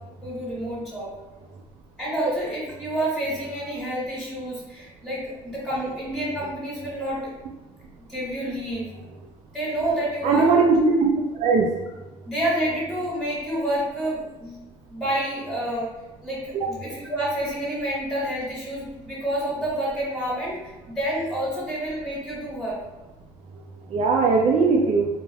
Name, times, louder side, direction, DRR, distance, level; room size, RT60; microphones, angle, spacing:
voice 1, 0.2-1.1 2.0-7.2 8.1-8.9 9.5-10.5 12.3-14.6 14.9-15.9 16.2-20.7 20.9-22.8, right 1 dB, ahead, -8 dB, 1.5 m, -28 dB
voice 2, 10.2-11.1 11.4-11.7 16.5-16.7 23.9-25.1, right 4 dB, 55° right, -1 dB, 0.4 m, -19 dB
3.2 x 2.1 x 2.3 m, 1.0 s
supercardioid pair, 75°, 14 cm